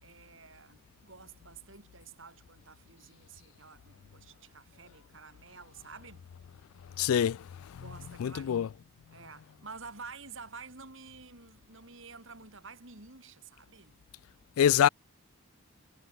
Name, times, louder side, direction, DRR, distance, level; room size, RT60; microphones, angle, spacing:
voice 1, 0.0-6.2 7.7-8.8 9.1-14.0, right 4 dB, 60° right, 3.7 m, -50 dB
voice 2, 7.0-7.4 7.8-7.9 8.2-8.7 14.6-14.9, left 9 dB, 80° left, 0.3 m, -25 dB
head